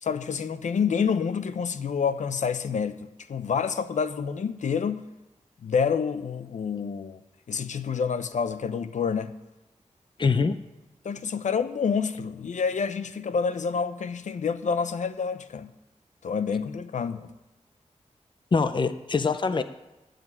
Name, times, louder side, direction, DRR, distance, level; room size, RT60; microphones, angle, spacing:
voice 1, 0.0-5.0 5.6-7.2 7.5-9.3 11.0-15.7 16.2-17.2, left 6 dB, 85° left, 0.7 m, -28 dB
voice 2, 10.2-10.6 18.5-19.6, left 4 dB, 40° left, 0.6 m, -23 dB
15.0 x 5.2 x 9.7 m
wide cardioid pair, 110°, 12 cm